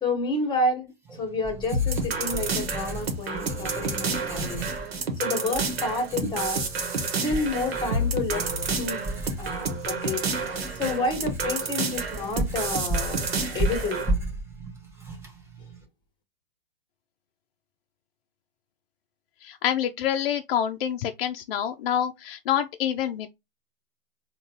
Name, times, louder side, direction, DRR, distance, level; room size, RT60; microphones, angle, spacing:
voice 1, 0.0-4.7 5.2-6.6 7.2-8.5 8.8-9.0 9.4-10.2 10.8-14.0, left 2 dB, 15° left, 1.2 m, -29 dB
Writing, 1.0-15.8, right 2 dB, 10° right, 0.6 m, -35 dB
sound 1, 1.7-14.1, right 3 dB, 85° right, 1.0 m, -30 dB
voice 2, 19.4-23.3, left 10 dB, 65° left, 0.4 m, -27 dB
3.7 x 2.3 x 2.7 m
hypercardioid pair, 125°, 30 cm